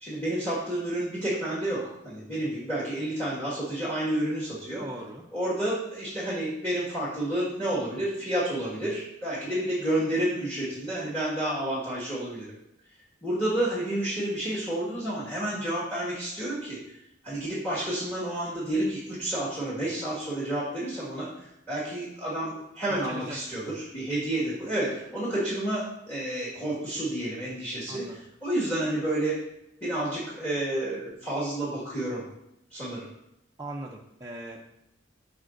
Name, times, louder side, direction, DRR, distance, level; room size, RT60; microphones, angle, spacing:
voice 1, 0.0-4.8 5.3-12.5 13.2-17.0 17.2-29.3 29.8-32.2 32.7-33.1, right 1 dB, 10° left, -7 dB, 1.7 m, -30 dB
voice 2, 4.8-5.2 23.0-23.4 27.9-28.2 33.6-34.6, right 1 dB, 15° right, -3 dB, 0.5 m, -39 dB
11.0 x 5.0 x 2.6 m, 0.84 s
head